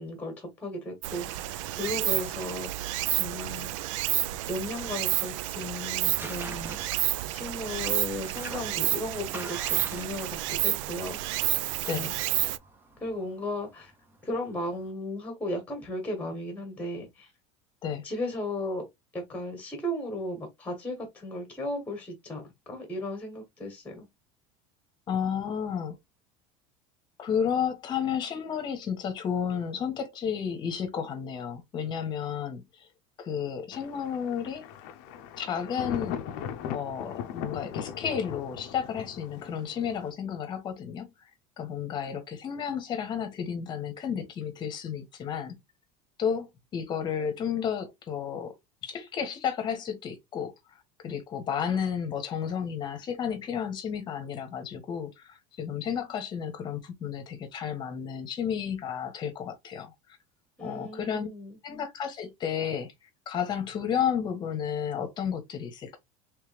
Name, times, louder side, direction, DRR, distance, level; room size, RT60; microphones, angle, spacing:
voice 1, 0.0-3.7 4.4-6.8 7.3-11.4 11.9-12.1 13.0-13.9 14.2-17.3 18.0-18.8 19.1-24.1 60.6-61.6, left 1 dB, 10° left, 1.4 m, -35 dB
Stream, 1.0-12.6, right 16 dB, 80° right, 0.4 m, -30 dB
Tearing, 2.7-14.9, right 2 dB, 15° right, 0.7 m, -47 dB
voice 2, 25.1-26.0 27.2-32.6 33.2-34.6 35.4-36.2 36.7-41.1 41.6-45.5 46.2-48.6 48.8-50.5 51.0-59.9 60.6-61.3 61.6-62.9 63.3-66.0, left 8 dB, 30° left, 1.1 m, -32 dB
Thunder, 33.7-40.1, left 9 dB, 65° left, 0.6 m, -38 dB
3.3 x 3.2 x 3.3 m
cardioid pair, 160°, 16 cm